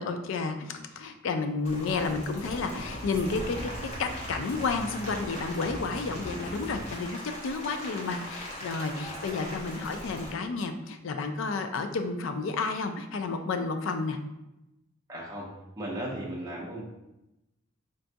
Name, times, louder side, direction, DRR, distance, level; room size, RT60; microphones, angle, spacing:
voice 1, 0.0-3.6 4.0-7.2 7.4-14.2, left 4 dB, 75° left, 7 dB, 0.3 m, -31 dB
Rain, 1.6-10.3, equal, 35° left, 0.8 m, -40 dB
sound 1, 1.8-6.8, right 1 dB, 60° right, 0.6 m, -43 dB
voice 2, 15.1-15.5 15.8-16.8, right 1 dB, 15° right, -5 dB, 0.5 m, -36 dB
3.9 x 2.3 x 2.6 m, 0.93 s
head